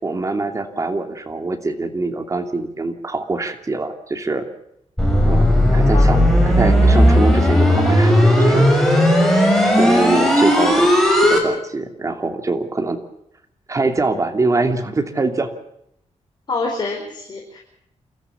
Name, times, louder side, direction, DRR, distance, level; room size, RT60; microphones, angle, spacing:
voice 1, 0.0-4.4 5.3-9.0 9.8-10.9 11.2-13.0 13.7-15.5, right 3 dB, 25° right, 6 dB, 2.8 m, -23 dB
sound 1, 5.0-11.4, equal, ahead, 6.1 m, -14 dB
voice 2, 16.5-17.6, left 3 dB, 40° left, 1 dB, 4.8 m, -26 dB
29.5 x 14.0 x 7.2 m, 0.76 s
wide cardioid pair, 140°, 12 cm